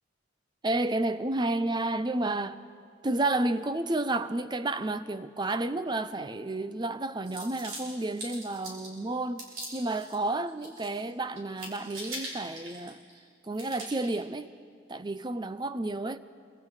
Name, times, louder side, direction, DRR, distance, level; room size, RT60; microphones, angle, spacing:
voice 1, 0.6-2.6 3.0-9.4 9.7-13.0 13.4-14.5 14.9-16.2, right 2 dB, 20° right, 0.5 m, -31 dB
sound 1, 7.2-9.0 9.4-10.2 10.5-11.1 11.4-13.2 13.5-14.1, right 1 dB, 75° right, 5.7 m, -42 dB
26.5 x 24.5 x 4.8 m
head